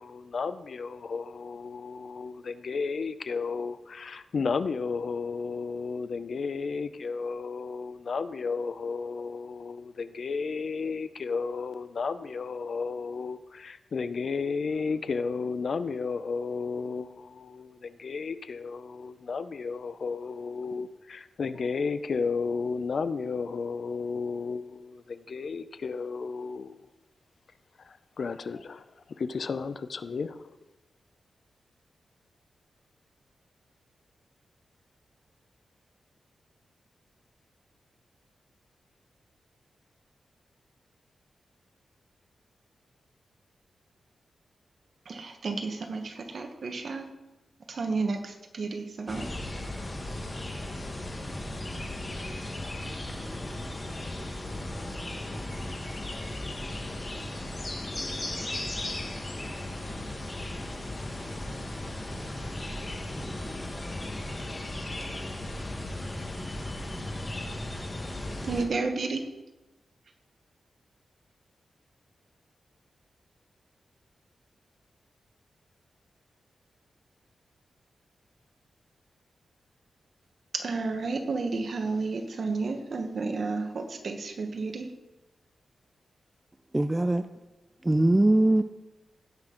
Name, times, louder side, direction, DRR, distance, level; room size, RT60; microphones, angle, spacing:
voice 1, 0.0-26.8 27.8-28.8 29.2-30.5, left 5 dB, 55° left, 13 dB, 0.5 m, -33 dB
voice 2, 45.0-47.1 47.7-49.3 68.4-69.3 80.5-84.9, right 3 dB, 55° right, 5 dB, 1.2 m, -31 dB
sound 1, 49.1-68.6, left 1 dB, 25° left, 1.3 m, -36 dB
voice 3, 86.7-87.3 87.8-88.6, right 1 dB, 15° right, 9 dB, 0.3 m, -21 dB
16.0 x 6.0 x 3.9 m, 1.1 s
wide cardioid pair, 120°, 0 cm